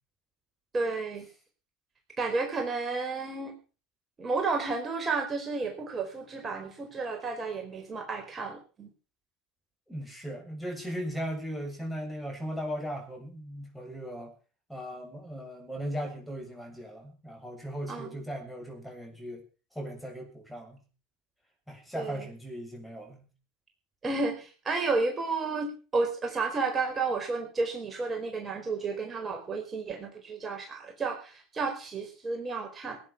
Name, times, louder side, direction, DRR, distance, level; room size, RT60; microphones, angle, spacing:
voice 1, 0.7-1.3 2.2-3.6 4.2-8.9 17.9-18.2 21.9-22.3 24.0-33.0, right 3 dB, 30° right, 3 dB, 4.6 m, -32 dB
voice 2, 9.9-14.3 14.7-19.4 19.7-20.8 21.7-23.3, equal, 5° left, 4 dB, 7.2 m, -38 dB
18.5 x 10.0 x 6.1 m, 0.36 s
hypercardioid pair, 80°, 0 cm